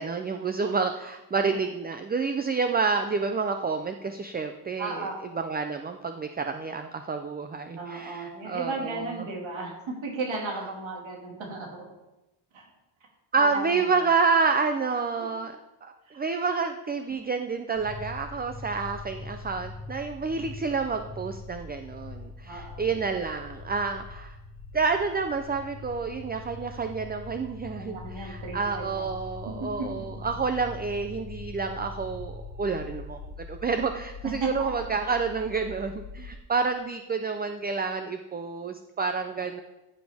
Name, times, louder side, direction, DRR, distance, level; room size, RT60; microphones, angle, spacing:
voice 1, 0.0-5.1 5.3-9.0 13.3-15.6 15.8-24.3 24.7-39.6, right 4 dB, 20° right, 7 dB, 0.4 m, -29 dB
voice 2, 4.8-5.1 7.8-11.7 12.5-12.6 13.4-14.1 16.1-16.2 20.3-20.4 22.4-22.9 27.8-29.1 29.6-29.7 34.4-34.5, right 3 dB, 85° right, -1 dB, 2.1 m, -35 dB
sound 1, 17.8-36.3, left 3 dB, 80° left, 1.4 m, -42 dB
14.5 x 6.3 x 3.5 m, 1.0 s
wide cardioid pair, 125°, 46 cm